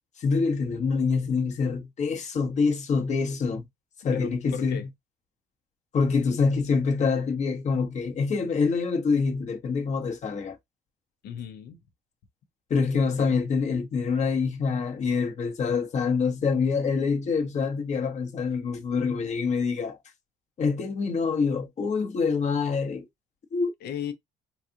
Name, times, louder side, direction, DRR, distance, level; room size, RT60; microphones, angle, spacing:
voice 1, 0.2-3.6 4.0-4.8 5.9-10.6 12.7-20.0 20.6-23.0 23.5-23.7, left 5 dB, 45° left, 1.0 m, -26 dB
voice 2, 4.1-4.9 11.2-11.8 23.8-24.1, left 8 dB, 75° left, 0.9 m, -35 dB
4.0 x 2.4 x 2.8 m
cardioid pair, 110°, 17 cm